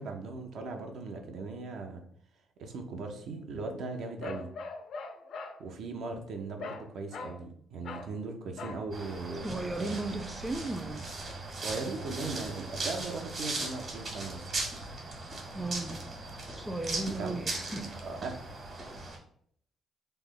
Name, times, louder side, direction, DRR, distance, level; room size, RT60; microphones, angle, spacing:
voice 1, 0.0-2.0 2.6-4.5 5.6-10.0 11.5-14.5 17.0-17.4 17.7-18.3, right 3 dB, 70° right, 0.6 m, -39 dB
Bark, 4.2-5.6 6.6-6.9 7.1-7.4 7.8-8.1 8.6-8.8, left 4 dB, 65° left, 0.4 m, -41 dB
sound 1, 8.9-19.2, right 2 dB, 50° right, 1.2 m, -38 dB
voice 2, 9.4-11.1 15.5-16.1 16.5-17.9, right 2 dB, 10° right, 0.3 m, -36 dB
3.1 x 2.1 x 3.6 m
cardioid pair, 90°, 0 cm